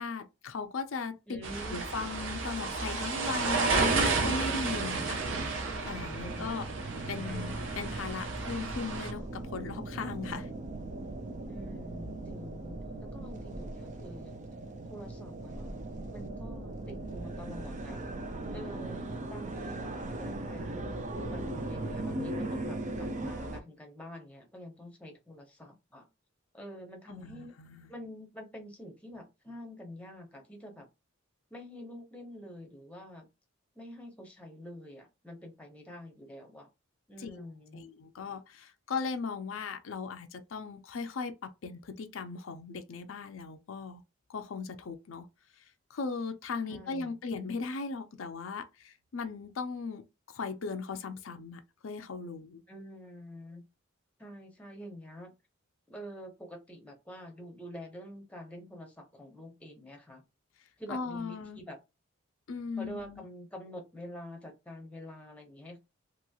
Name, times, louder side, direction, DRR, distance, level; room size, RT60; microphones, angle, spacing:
voice 1, 0.0-1.4 1.7-5.5 5.8-6.7 7.1-10.5 27.1-27.9 37.2-37.3 37.7-44.0 44.3-45.3 45.5-52.6 60.9-61.6 62.5-63.3, left 4 dB, 75° left, 0.5 m, -38 dB
voice 2, 1.3-1.8 6.2-6.8 7.2-7.6 11.5-14.4 14.9-15.8 16.1-18.0 18.5-19.9 20.2-26.1 26.5-27.5 27.9-30.9 31.5-33.3 33.7-36.7 37.1-37.9 46.7-47.1 52.7-53.6 54.2-55.3 55.9-60.2 60.8-61.8 62.8-65.8, equal, 5° left, 0.8 m, -47 dB
sound 1, 1.4-9.1, right 4 dB, 65° right, 0.8 m, -32 dB
sound 2, 4.6-23.6, right 2 dB, 35° right, 0.4 m, -39 dB
2.9 x 2.9 x 2.3 m
head